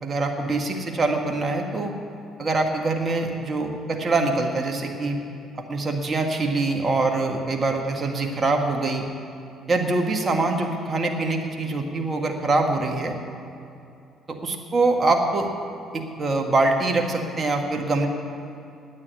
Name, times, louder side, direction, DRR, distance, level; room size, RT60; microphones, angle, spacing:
voice 1, 0.0-1.9 2.4-5.2 5.7-9.1 9.7-13.1 14.3-15.5 15.9-18.1, right 3 dB, 40° right, 3 dB, 1.8 m, -24 dB
9.5 x 9.2 x 9.5 m, 2.6 s
hypercardioid pair, 50°, 0 cm